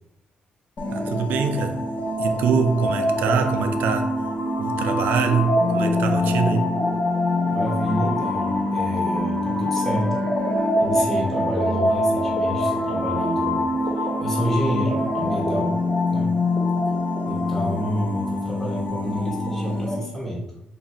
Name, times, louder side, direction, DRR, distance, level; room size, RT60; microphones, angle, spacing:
sound 1, 0.8-20.0, left 1 dB, 45° left, 1.3 m, -24 dB
voice 1, 0.9-1.8 2.2-4.1 4.6-6.7, right 5 dB, 85° right, 7 dB, 0.4 m, -24 dB
voice 2, 7.5-10.2 10.8-13.7 14.0-15.8 16.1-16.3 17.3-20.6, equal, 10° left, -4 dB, 1.0 m, -29 dB
3.2 x 2.4 x 4.3 m, 0.87 s
cardioid pair, 80°, 3 cm